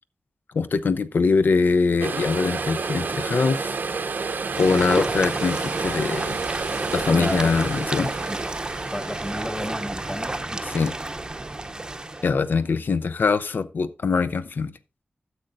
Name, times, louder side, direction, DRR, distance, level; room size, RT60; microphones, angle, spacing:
voice 1, 0.5-3.8 4.6-6.4 6.9-8.1 10.6-10.9 12.2-14.7, left 4 dB, 75° left, 0.6 m, -23 dB
sound 1, 2.0-12.3 12.6-12.7, right 4 dB, 75° right, 0.8 m, -31 dB
sound 2, 4.5-12.3, right 2 dB, 25° right, 0.6 m, -31 dB
voice 2, 7.1-7.5 8.3-8.4 8.9-10.6, equal, 10° left, 1.1 m, -32 dB
12.5 x 7.8 x 2.5 m
wide cardioid pair, 115°, 3 cm